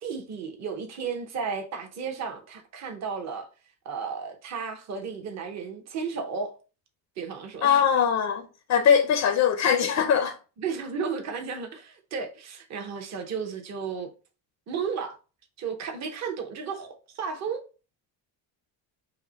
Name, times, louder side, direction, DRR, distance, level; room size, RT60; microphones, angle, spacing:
voice 1, 0.0-3.5 3.8-6.6 7.2-7.8 10.6-14.1 14.7-15.2 15.6-17.6, right 5 dB, 35° right, 0.8 m, -33 dB
voice 2, 7.6-10.4, left 7 dB, 35° left, 0.4 m, -22 dB
5.6 x 2.1 x 3.9 m
cardioid pair, 170°, 45 cm